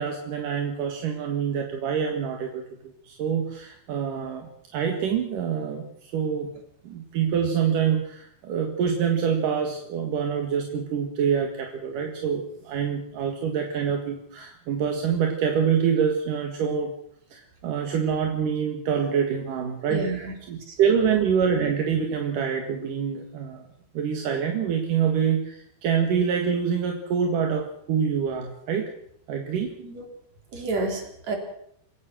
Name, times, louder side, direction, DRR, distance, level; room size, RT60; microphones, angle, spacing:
voice 1, 0.0-2.6 3.0-5.9 6.1-6.5 6.8-17.0 17.3-20.1 20.5-23.6 23.9-28.9 29.3-29.8, right 7 dB, 55° right, 3 dB, 2.6 m, -26 dB
voice 2, 19.9-20.3 20.7-21.2 29.8-30.1 30.5-31.4, right 3 dB, 35° right, 3 dB, 4.6 m, -30 dB
28.0 x 16.5 x 6.2 m, 0.70 s
omnidirectional pair, 5.9 m